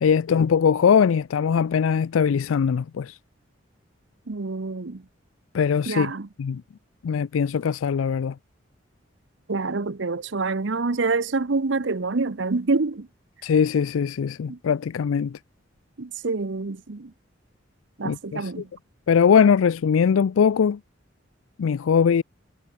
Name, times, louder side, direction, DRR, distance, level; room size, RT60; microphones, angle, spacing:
voice 1, 0.0-3.2 5.5-6.1 6.4-6.6 7.0-8.4 13.4-15.4 18.0-18.5 19.1-20.8 21.6-22.2, left 7 dB, 90° left, 0.4 m, -21 dB
voice 2, 4.3-5.0 5.9-6.3 9.5-13.1 14.5-14.6 16.0-17.1 18.0-18.7, right 3 dB, 65° right, 0.8 m, -26 dB
head